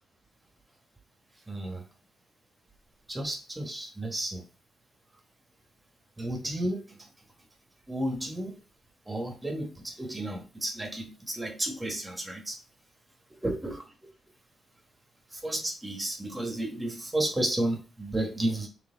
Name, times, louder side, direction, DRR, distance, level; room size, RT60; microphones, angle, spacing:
voice 1, 1.5-1.8 3.1-4.4 6.2-7.0 7.9-8.6 9.1-12.6 13.4-13.8 15.3-18.7, right 1 dB, 15° right, 2 dB, 1.2 m, -32 dB
4.1 x 3.3 x 3.8 m, 0.33 s
cardioid pair, 105°, 0 cm